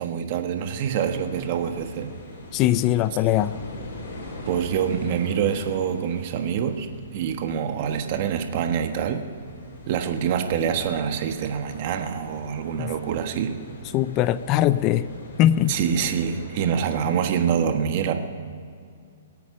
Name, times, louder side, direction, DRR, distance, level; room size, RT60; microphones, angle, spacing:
voice 1, 0.0-2.1 4.5-9.3 9.9-13.6 15.7-18.1, right 8 dB, 40° right, 6 dB, 1.3 m, -26 dB
sound 1, 0.8-17.5, left 2 dB, 70° left, 5.3 m, -42 dB
voice 2, 2.5-3.6 12.8-12.9 13.9-15.0 15.4-15.7, left 13 dB, 25° left, 16 dB, 0.4 m, -21 dB
23.0 x 8.5 x 6.6 m, 2.3 s
hypercardioid pair, 155°, 0 cm